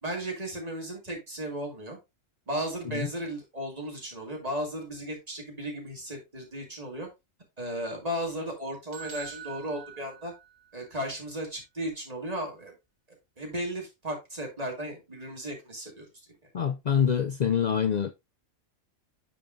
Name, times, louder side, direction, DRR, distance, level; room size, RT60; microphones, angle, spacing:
voice 1, 0.0-2.0 2.5-7.1 7.6-10.3 10.7-12.8 13.4-16.1, right 1 dB, 30° right, 2.3 m, -35 dB
sound 1, 8.9-10.9, right 7 dB, 85° right, 2.2 m, -45 dB
voice 2, 16.5-18.1, left 8 dB, 80° left, 0.3 m, -25 dB
8.9 x 5.6 x 2.6 m
omnidirectional pair, 1.4 m